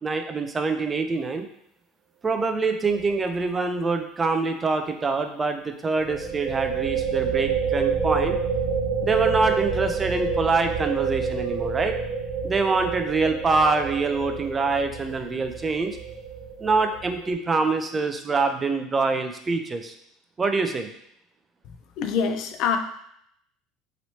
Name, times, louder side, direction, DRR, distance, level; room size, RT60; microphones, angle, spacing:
voice 1, 0.0-1.5 2.2-8.4 9.0-12.0 12.4-16.0 16.6-19.9 20.4-20.9, right 4 dB, 25° right, 6 dB, 0.4 m, -25 dB
sound 1, 2.8-3.1 3.4-3.5 6.0-17.3, right 5 dB, 40° right, 1.0 m, -28 dB
voice 2, 22.0-22.8, left 6 dB, 60° left, 7 dB, 0.4 m, -24 dB
3.0 x 2.9 x 2.8 m, 0.71 s
supercardioid pair, 105°, 0 cm